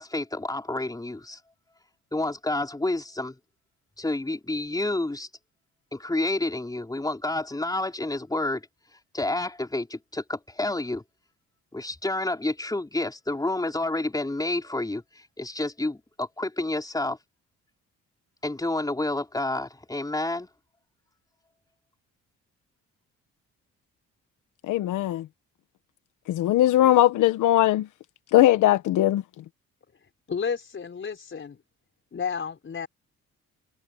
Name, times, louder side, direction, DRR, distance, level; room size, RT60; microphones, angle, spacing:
voice 1, 0.0-1.4 2.1-3.3 4.0-5.3 5.9-8.6 9.1-11.0 11.7-15.0 15.4-17.2 18.4-20.5, left 2 dB, 10° left, 4.3 m, -29 dB
voice 2, 24.6-25.3 26.3-27.9 28.3-29.2, left 13 dB, 85° left, 1.3 m, -20 dB
voice 3, 30.3-31.6 32.1-32.9, left 6 dB, 40° left, 5.1 m, -31 dB
cardioid pair, 90°, 30 cm